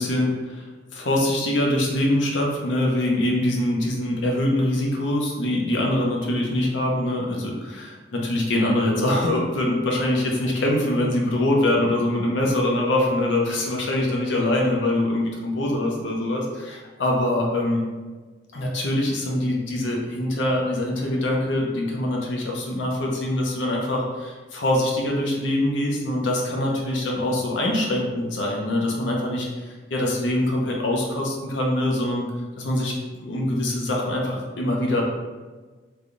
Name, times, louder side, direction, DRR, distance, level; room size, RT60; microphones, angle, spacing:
voice 1, 0.0-17.8 18.5-32.3 32.6-35.0, left 1 dB, 80° left, -1 dB, 0.7 m, -24 dB
3.4 x 2.3 x 3.7 m, 1.3 s
head